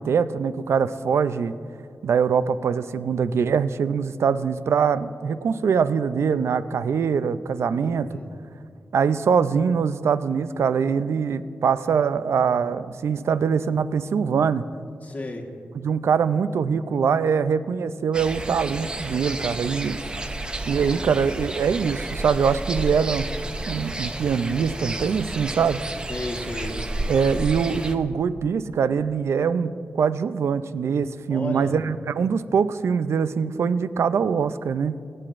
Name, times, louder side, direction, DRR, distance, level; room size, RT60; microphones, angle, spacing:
voice 1, 0.0-1.5 2.0-8.2 8.9-14.6 15.7-20.0 20.7-23.3 23.7-25.8 27.1-35.0, right 6 dB, 70° right, 14 dB, 0.4 m, -23 dB
voice 2, 7.8-8.3 15.0-15.4 19.6-20.1 26.1-26.8 31.3-31.7, left 2 dB, 35° left, 1 dB, 1.3 m, -34 dB
sound 1, 18.1-27.9, right 2 dB, 20° right, 0.5 m, -31 dB
25.0 x 8.7 x 2.5 m, 2.3 s
wide cardioid pair, 135°, 5 cm